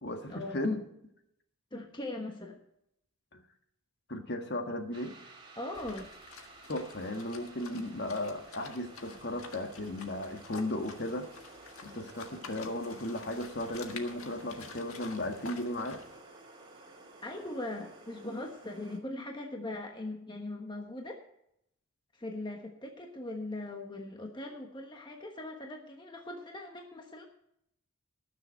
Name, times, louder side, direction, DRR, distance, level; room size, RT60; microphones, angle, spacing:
voice 1, 0.0-0.8 3.3-3.4 4.1-5.1 6.7-11.2 11.8-16.0, left 1 dB, 50° left, 5 dB, 1.6 m, -35 dB
voice 2, 1.7-2.6 5.6-6.1 17.2-21.2 22.1-27.2, left 2 dB, 20° left, 2 dB, 1.2 m, -40 dB
sound 1, 4.9-19.0, right 2 dB, 20° right, 2.1 m, -53 dB
sound 2, 5.7-16.2, left 5 dB, 70° left, 1.6 m, -50 dB
19.0 x 6.9 x 4.5 m, 0.76 s
head